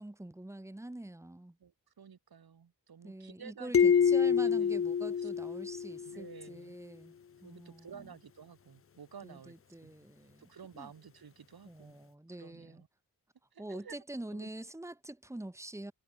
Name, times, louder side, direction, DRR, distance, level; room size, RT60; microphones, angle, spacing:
voice 1, 0.0-1.6 3.0-7.1 7.4-8.1 9.2-10.9 11.6-12.8 13.6-15.9, right 1 dB, 10° right, 1.6 m, -45 dB
voice 2, 1.6-4.7 5.2-5.3 6.1-6.8 7.4-9.5 9.8-10.0 10.4-12.9 13.5-14.0 14.3-14.5, right 7 dB, 90° right, 7.4 m, -52 dB
sound 1, 3.7-6.3, left 7 dB, 40° left, 0.6 m, -27 dB
wide cardioid pair, 120°, 36 cm